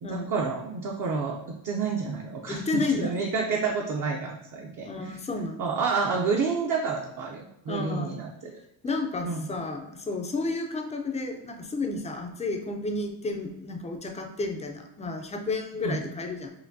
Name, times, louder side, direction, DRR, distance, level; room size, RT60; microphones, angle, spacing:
voice 1, 0.0-5.1 5.6-8.5 9.2-9.5 15.8-16.0, right 4 dB, 45° right, 0 dB, 0.5 m, -29 dB
voice 2, 2.5-3.1 4.8-5.6 7.7-8.2 8.8-16.5, left 3 dB, 15° left, 3 dB, 0.3 m, -31 dB
5.7 x 2.5 x 2.6 m, 0.84 s
cardioid pair, 135°, 47 cm